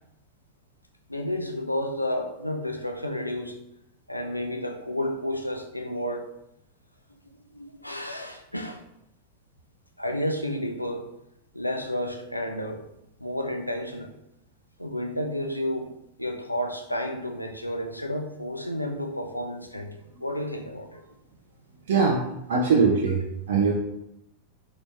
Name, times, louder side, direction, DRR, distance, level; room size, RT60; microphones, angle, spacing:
voice 1, 1.1-3.6 4.1-6.2 7.3-8.8 10.0-11.0 11.5-12.9 13.2-14.2 14.8-15.9 16.2-19.9 20.2-21.0 22.5-22.6, left 1 dB, 90° left, 4 dB, 0.5 m, -31 dB
voice 2, 21.9-22.2 22.5-23.7, right 5 dB, 60° right, -1 dB, 0.6 m, -22 dB
4.0 x 3.0 x 3.4 m, 0.82 s
figure-of-eight pair, 90°, 0 cm